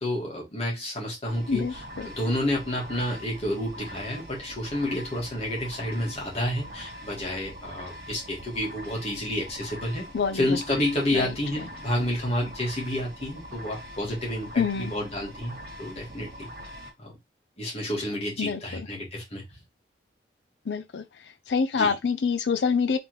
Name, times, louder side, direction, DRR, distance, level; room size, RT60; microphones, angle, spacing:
voice 1, 0.0-10.1 10.3-16.5 17.0-17.1 17.6-19.4 21.7-21.9, left 1 dB, 35° left, 1.8 m, -30 dB
sound 1, 1.3-16.9, equal, 55° right, 1.6 m, -43 dB
voice 2, 1.5-2.1 10.1-10.6 11.1-11.3 14.6-14.9 18.4-18.9 20.7-21.0 21.5-23.0, left 5 dB, 75° left, 0.4 m, -26 dB
3.6 x 3.4 x 3.1 m
head